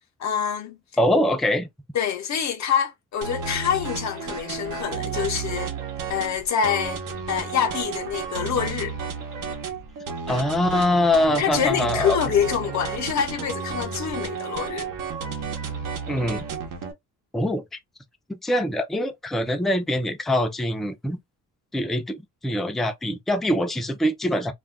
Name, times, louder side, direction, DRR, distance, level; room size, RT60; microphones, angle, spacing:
voice 1, 0.2-0.8 1.9-5.7 6.1-7.0 7.3-9.0 11.3-14.9, left 8 dB, 60° left, 0.5 m, -26 dB
voice 2, 1.0-1.7 10.3-12.2 16.1-16.5 17.3-17.8 18.3-21.2 21.7-24.5, left 1 dB, ahead, 0.3 m, -23 dB
sound 1, 3.2-16.9, right 5 dB, 85° right, 0.8 m, -32 dB
2.3 x 2.1 x 3.4 m
cardioid pair, 140°, 32 cm